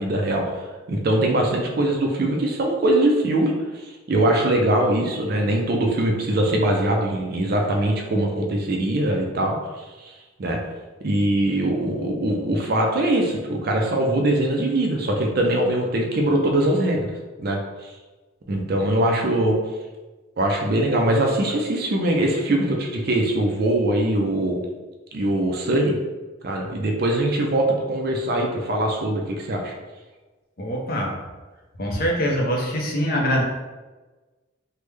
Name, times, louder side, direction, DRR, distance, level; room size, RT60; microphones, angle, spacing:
voice 1, 0.0-10.1 10.4-10.6 11.0-17.1 17.4-17.9 18.5-19.6 20.4-24.6 25.1-26.0 26.4-29.7, right 1 dB, 50° right, 1 dB, 0.4 m, -22 dB
voice 2, 30.6-31.2 31.8-33.4, equal, 45° left, 0 dB, 0.6 m, -23 dB
3.2 x 2.1 x 3.3 m, 1.2 s
head